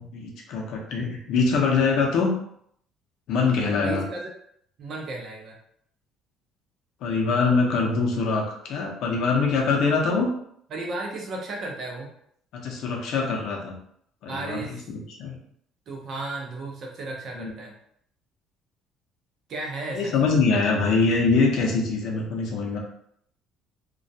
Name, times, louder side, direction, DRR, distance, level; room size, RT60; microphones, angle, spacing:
voice 1, 0.0-2.3 3.3-4.0 7.0-10.3 12.5-13.8 14.2-15.4 17.3-17.5 19.9-22.8, left 4 dB, 60° left, 0 dB, 0.5 m, -24 dB
voice 2, 3.8-4.2 4.8-5.6 10.7-12.1 14.3-14.8 15.9-17.7 19.5-20.3, right 2 dB, 40° right, 0 dB, 0.5 m, -34 dB
2.2 x 2.1 x 2.6 m, 0.68 s
cardioid pair, 175°, 0 cm